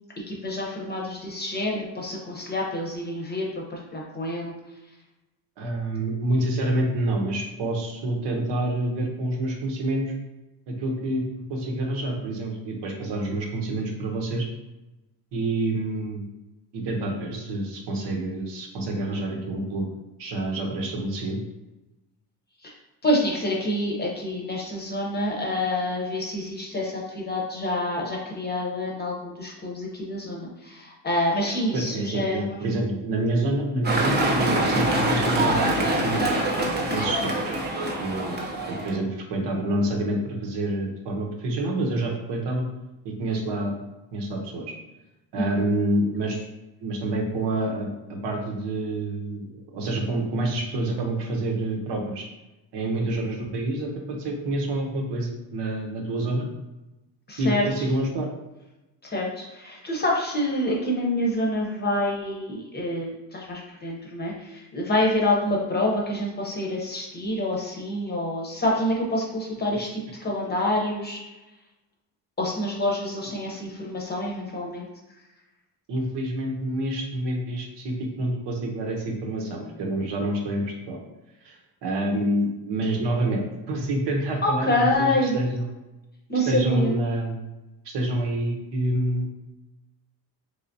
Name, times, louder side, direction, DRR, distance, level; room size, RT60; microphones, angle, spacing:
voice 1, 0.3-4.5 22.6-22.7 23.0-32.7 45.4-45.7 57.3-57.9 59.0-71.2 72.4-74.8 84.4-85.4 86.3-87.0, left 1 dB, 25° left, -2 dB, 0.7 m, -27 dB
voice 2, 5.6-10.1 10.7-11.2 11.5-14.5 15.3-16.3 16.7-19.9 20.2-21.4 31.7-36.4 36.9-37.6 38.0-38.3 38.7-42.7 43.0-43.7 44.1-44.7 45.3-46.4 46.8-52.3 52.7-56.5 57.4-58.3 75.9-81.0 81.4-81.6 81.8-85.7 86.5-87.5 87.8-89.3, right 1 dB, 75° right, 1 dB, 0.9 m, -27 dB
sound 1, 33.8-39.0, right 1 dB, 25° right, 0.6 m, -24 dB
3.4 x 3.2 x 2.6 m, 1.0 s
cardioid pair, 140°, 42 cm